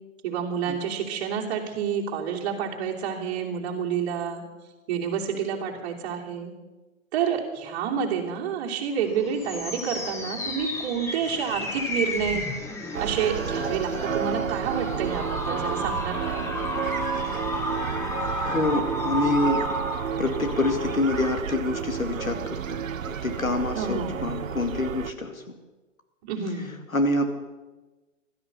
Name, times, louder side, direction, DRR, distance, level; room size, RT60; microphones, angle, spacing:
voice 1, 0.2-4.4 4.9-6.5 7.1-12.4 13.0-16.4 23.7-24.2 26.3-26.8, right 7 dB, 30° right, -2 dB, 3.1 m, -29 dB
sound 1, 9.0-21.4, left 1 dB, 5° left, 1.1 m, -32 dB
sound 2, 12.9-25.1, right 8 dB, 75° right, 0.8 m, -31 dB
voice 2, 18.3-19.6 20.2-25.3 26.9-27.2, left 2 dB, 85° left, 6 dB, 2.4 m, -26 dB
16.0 x 13.0 x 6.9 m, 1.2 s
figure-of-eight pair, 130°, 40 cm